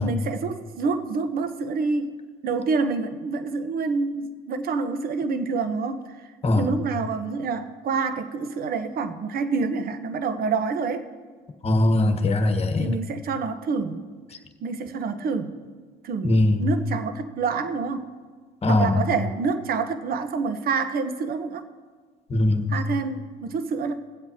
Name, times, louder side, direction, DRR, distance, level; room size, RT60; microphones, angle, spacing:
voice 1, 0.0-2.1 2.4-6.3 6.5-11.1 12.8-14.1 14.6-15.6 16.0-18.1 18.7-21.6 22.7-23.9, right 4 dB, 55° right, 9 dB, 1.1 m, -27 dB
voice 2, 6.4-6.8 11.6-12.9 16.2-16.6 18.6-19.0 22.3-22.7, left 2 dB, 35° left, 6 dB, 1.4 m, -21 dB
22.0 x 7.9 x 2.9 m, 1.5 s
supercardioid pair, 75°, 19 cm